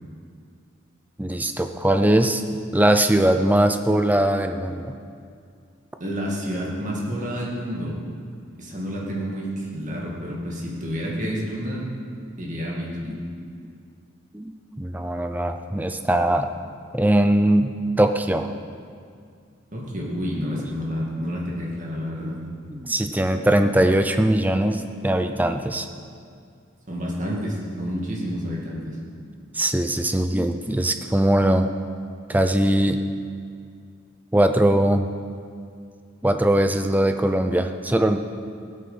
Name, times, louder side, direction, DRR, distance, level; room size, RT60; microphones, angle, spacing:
voice 1, 1.2-2.4 2.7-4.9 13.0-13.2 14.3-16.5 16.9-18.5 22.2-22.4 22.7-25.9 29.5-31.7 32.3-33.0 34.3-35.1 36.2-38.2, right 1 dB, 10° right, 7 dB, 0.5 m, -21 dB
voice 2, 6.0-8.0 8.6-11.9 12.4-13.2 19.7-22.4 26.9-29.0, equal, 40° right, -3 dB, 2.2 m, -29 dB
16.0 x 8.5 x 5.6 m, 2.3 s
head